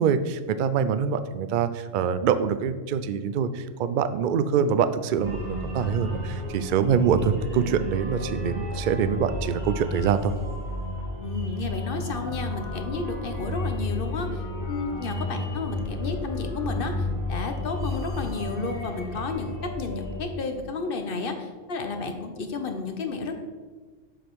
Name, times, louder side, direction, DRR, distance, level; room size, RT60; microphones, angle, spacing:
voice 1, 0.0-10.3, right 7 dB, 60° right, 11 dB, 0.5 m, -25 dB
sound 1, 5.2-20.2, left 1 dB, 40° right, 2.5 m, -32 dB
voice 2, 11.2-23.3, left 4 dB, 55° left, 6 dB, 0.9 m, -32 dB
7.4 x 5.2 x 4.6 m, 1.4 s
omnidirectional pair, 1.3 m